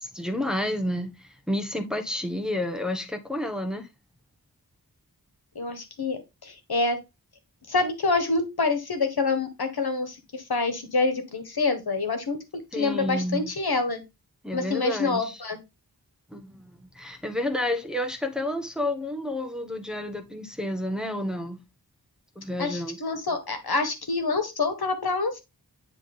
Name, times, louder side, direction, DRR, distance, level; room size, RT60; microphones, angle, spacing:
voice 1, 0.0-3.9 12.7-13.5 14.4-15.4 16.3-21.6 22.3-23.0, left 1 dB, ahead, 1.3 m, -30 dB
voice 2, 5.5-7.0 7.7-14.0 14.5-15.6 22.6-25.4, left 3 dB, 75° left, 1.6 m, -27 dB
9.7 x 3.5 x 3.7 m
wide cardioid pair, 55°, 38 cm